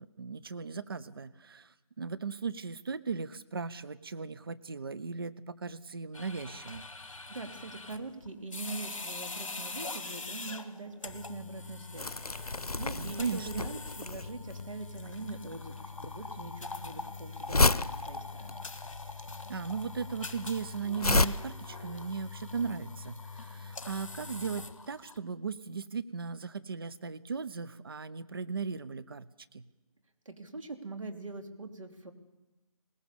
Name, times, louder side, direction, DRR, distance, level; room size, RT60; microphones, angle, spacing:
voice 1, 0.0-6.9 13.0-13.6 19.5-29.3 29.5-29.6, right 5 dB, 40° right, 15 dB, 0.7 m, -37 dB
sound 1, 6.1-25.2, left 3 dB, 60° left, 1.6 m, -43 dB
voice 2, 7.3-12.2 12.8-18.7 30.2-32.1, right 3 dB, 60° right, 4 dB, 3.0 m, -43 dB
Crumpling crinkling, 12.0-21.3, left 2 dB, 80° left, 0.8 m, -31 dB
20.5 x 19.5 x 6.9 m, 1.1 s
figure-of-eight pair, 150°, 19 cm